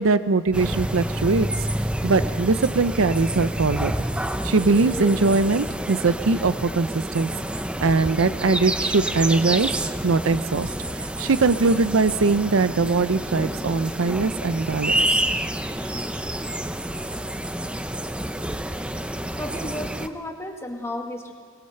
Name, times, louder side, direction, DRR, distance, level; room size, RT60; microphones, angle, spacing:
voice 1, 0.0-1.5 2.0-3.9 4.4-7.3 7.8-9.7 10.0-10.7 11.2-14.9, right 3 dB, 70° right, 13 dB, 0.6 m, -21 dB
sound 1, 0.5-20.1, right 1 dB, 5° right, 0.6 m, -28 dB
voice 2, 19.4-21.3, left 1 dB, 15° left, 2 dB, 2.0 m, -33 dB
23.0 x 20.5 x 6.7 m, 2.1 s
head